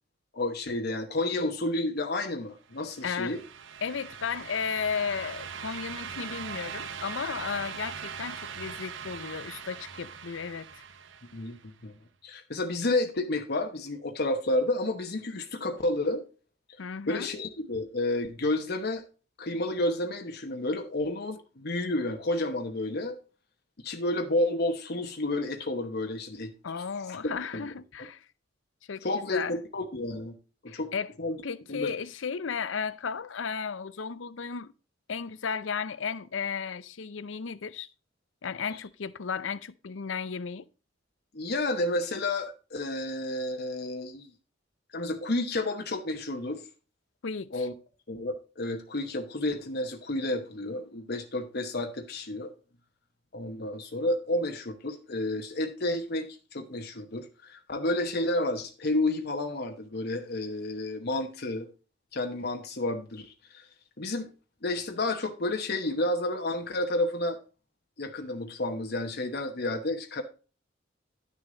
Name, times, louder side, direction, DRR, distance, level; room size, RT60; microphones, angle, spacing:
voice 1, 0.3-3.4 11.3-11.6 11.8-11.9 12.2-16.2 17.1-19.0 19.4-23.2 23.8-26.8 27.2-27.7 29.0-30.3 30.6-30.9 31.2-31.4 31.7-31.9 41.3-44.3 44.9-46.6 47.5-47.7 48.1-52.5 53.3-61.7 62.1-63.7 64.0-64.3 64.6-67.4 68.0-70.2, left 2 dB, 55° left, 1.1 m, -31 dB
sound 1, 2.7-11.6, right 7 dB, 75° right, 0.9 m, -41 dB
voice 2, 3.0-3.4 3.8-10.8 16.8-17.3 26.6-28.2 28.9-29.6 30.7-31.1 31.4-34.7 35.1-37.9 38.4-40.6 47.2-47.7, left 6 dB, 75° left, 0.6 m, -34 dB
11.0 x 6.6 x 3.9 m
head